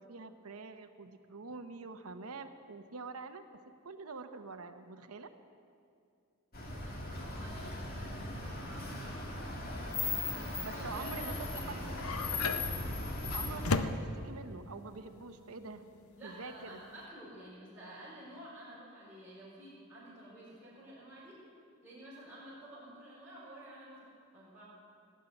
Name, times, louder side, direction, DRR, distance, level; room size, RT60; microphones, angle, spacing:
voice 1, 0.0-3.4 3.8-5.3 10.6-11.3 11.7-11.8 13.3-15.8 16.2-16.8, right 4 dB, 90° right, 7 dB, 0.9 m, -45 dB
sound 1, 6.5-13.8, left 2 dB, 45° left, 2.0 m, -38 dB
voice 2, 6.5-11.9 16.2-21.4 21.8-24.1 24.3-24.6, right 1 dB, 5° right, -13 dB, 4.9 m, -51 dB
sound 2, 11.5-17.1, left 3 dB, 80° left, 0.7 m, -37 dB
18.0 x 7.6 x 9.9 m, 2.4 s
head